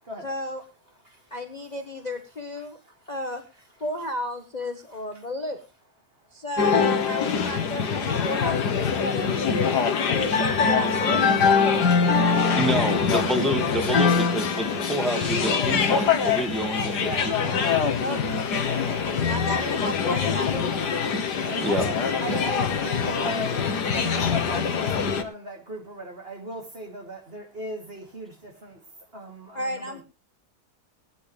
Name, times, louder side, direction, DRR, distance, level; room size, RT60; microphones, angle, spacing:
voice 1, 0.2-0.6 1.3-2.8 3.1-3.4 3.8-5.6 6.3-9.3 10.1-12.6 18.0-18.3 18.7-20.7 21.4-21.5 29.5-30.0, left 1 dB, 25° left, 5 dB, 1.4 m, -33 dB
sound 1, 6.6-25.2, left 6 dB, 85° left, 2.0 m, -23 dB
voice 2, 12.6-17.1 17.4-17.6 21.6-21.8, right 1 dB, ahead, 5 dB, 1.9 m, -28 dB
voice 3, 16.9-17.4 19.5-19.9 21.2-23.6 23.9-28.8 29.1-30.0, right 1 dB, 35° right, 3 dB, 3.0 m, -37 dB
20.0 x 10.0 x 3.3 m, 0.29 s
omnidirectional pair, 1.7 m